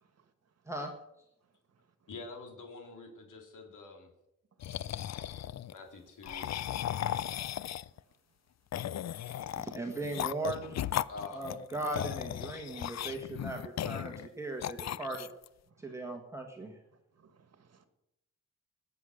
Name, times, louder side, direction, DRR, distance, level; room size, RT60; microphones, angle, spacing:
voice 1, 0.0-0.3 2.0-2.1 4.8-5.5 15.7-16.2 16.6-16.7 17.1-17.9, right 6 dB, 55° right, 9 dB, 1.6 m, -67 dB
voice 2, 2.1-4.1 5.1-6.5 11.1-11.4, left 3 dB, 75° left, 2 dB, 3.0 m, -47 dB
sound 1, 4.6-5.7 6.2-8.0 8.7-14.3 14.6-15.5, left 11 dB, 60° left, 0.4 m, -36 dB
voice 3, 9.3-10.8 11.3-15.3 15.8-16.7, right 2 dB, 10° right, 1 dB, 1.6 m, -38 dB
20.0 x 8.3 x 6.4 m, 0.84 s
wide cardioid pair, 180°, 31 cm